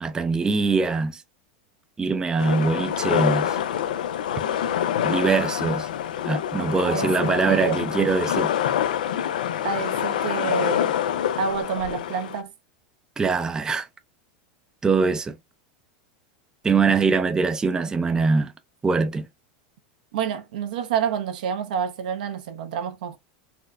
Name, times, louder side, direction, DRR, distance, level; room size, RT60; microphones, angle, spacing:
voice 1, 0.0-1.2 2.0-3.6 5.0-5.9 6.2-8.5 13.2-13.9 14.8-15.4 16.6-18.5 18.8-19.3, right 4 dB, 15° right, 0.5 m, -22 dB
sound 1, 2.4-12.4, left 10 dB, 85° left, 0.4 m, -26 dB
voice 2, 6.8-7.9 9.6-11.0 11.4-12.5 20.1-23.2, right 7 dB, 75° right, 0.8 m, -28 dB
4.2 x 2.1 x 2.4 m
hypercardioid pair, 110°, 4 cm